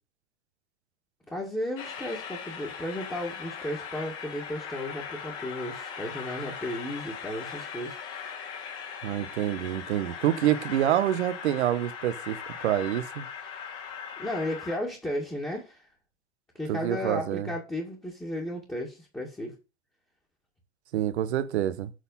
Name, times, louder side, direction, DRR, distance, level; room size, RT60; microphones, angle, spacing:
voice 1, 1.3-8.0 14.2-15.8 16.5-19.6, left 1 dB, 5° left, 2.0 m, -34 dB
Train, 1.8-14.8, left 6 dB, 40° left, 2.2 m, -39 dB
voice 2, 9.0-13.2 16.7-17.5 20.9-21.9, right 12 dB, 80° right, 1.1 m, -27 dB
7.9 x 4.1 x 5.5 m
hypercardioid pair, 120°, 33 cm